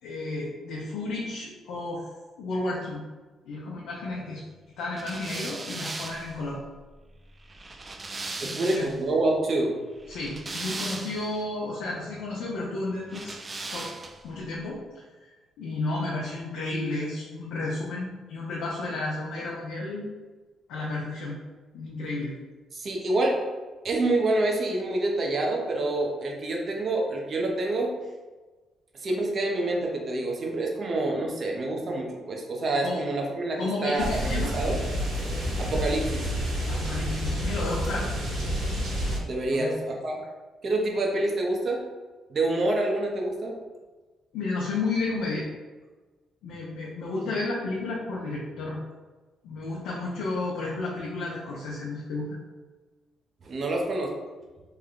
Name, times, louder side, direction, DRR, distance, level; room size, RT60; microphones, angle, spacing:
voice 1, 0.0-2.1 2.4-3.0 3.5-4.4 4.8-6.6 8.4-8.8 10.1-13.4 13.7-13.9 14.2-20.1 20.7-21.4 21.7-22.3 32.8-33.0 33.6-34.5 36.7-38.1 39.5-39.8 44.3-45.5 46.4-48.8 49.4-52.4, left 2 dB, 90° left, -5 dB, 0.6 m, -32 dB
sound 1, 5.0-9.1 10.0-11.4 13.1-14.3, right 3 dB, 30° right, 0.3 m, -38 dB
voice 2, 8.4-9.8 22.7-23.4 23.8-27.9 28.9-34.8 35.6-36.3 39.3-40.2 40.6-41.8 42.3-43.6 53.4-54.2, right 2 dB, 50° right, 0 dB, 0.7 m, -27 dB
sound 2, 34.0-39.2, equal, 70° right, 1.4 m, -29 dB
3.2 x 2.2 x 3.8 m, 1.3 s
cardioid pair, 90°, 0 cm